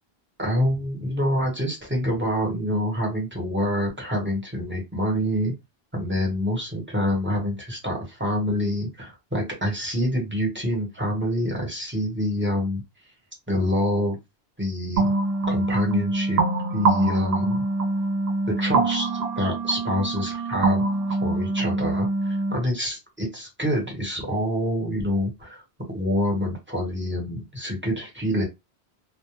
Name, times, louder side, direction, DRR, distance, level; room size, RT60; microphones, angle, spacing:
voice 1, 0.4-5.5 5.9-12.8 13.5-14.2 14.6-15.1 15.5-16.4 16.7-17.6 18.5-20.8 21.2-25.6 25.9-28.4, equal, 10° right, -2 dB, 1.0 m, -26 dB
sound 1, 15.0-22.5, right 2 dB, 75° right, 0.8 m, -24 dB
2.3 x 2.1 x 3.0 m, 0.21 s
omnidirectional pair, 1.1 m